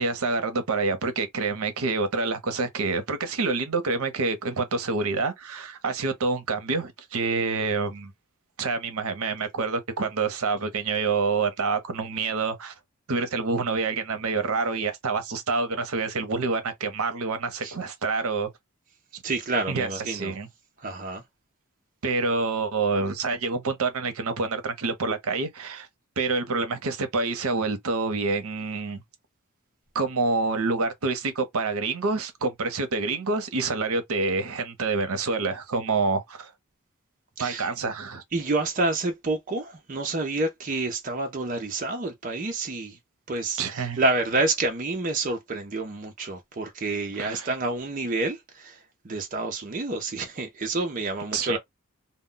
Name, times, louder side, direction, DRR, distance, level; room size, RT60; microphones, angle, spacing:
voice 1, 0.0-8.1 8.6-12.7 13.1-18.5 19.7-20.5 22.0-25.9 26.2-29.0 29.9-36.5 37.4-38.2 43.6-44.0 47.2-47.5 51.3-51.6, right 4 dB, 80° right, 0.7 m, -27 dB
voice 2, 19.2-20.4 20.8-21.2 37.4-37.7 38.3-43.0 43.3-51.6, right 2 dB, 35° right, 0.5 m, -28 dB
2.1 x 2.1 x 3.7 m
head